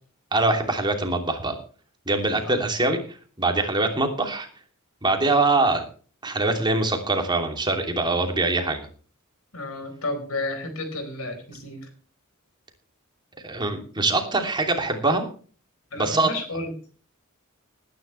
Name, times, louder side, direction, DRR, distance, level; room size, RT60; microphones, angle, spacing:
voice 1, 0.3-1.6 2.1-3.0 3.4-4.5 5.0-5.8 6.2-8.9 13.4-15.2 16.0-16.3, right 2 dB, 20° right, 4 dB, 2.9 m, -23 dB
voice 2, 9.5-11.9 15.9-16.7, left 2 dB, 90° left, 7 dB, 4.6 m, -32 dB
20.0 x 10.5 x 3.3 m, 0.41 s
head